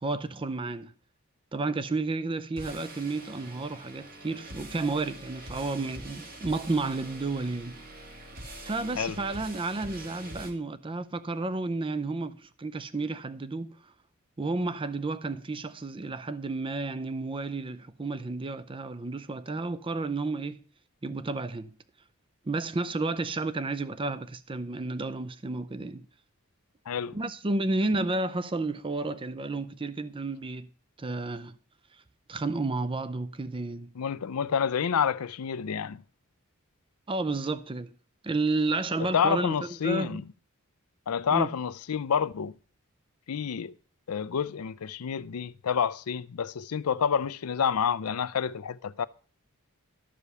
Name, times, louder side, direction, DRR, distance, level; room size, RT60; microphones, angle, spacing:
voice 1, 0.0-0.9 1.5-7.8 8.6-13.8 14.4-20.6 21.0-21.8 22.4-26.1 27.1-30.7 31.0-31.6 32.3-33.9 37.1-37.9 38.2-40.2 41.3-41.5, right 3 dB, 25° right, 0.5 m, -31 dB
sound 1, 2.6-10.5, right 1 dB, 45° right, 1.9 m, -44 dB
voice 2, 26.9-27.2 34.0-36.0 39.1-40.2 41.1-42.5 43.3-43.7 44.1-49.1, left 7 dB, 85° left, 0.5 m, -28 dB
12.5 x 5.0 x 6.8 m
head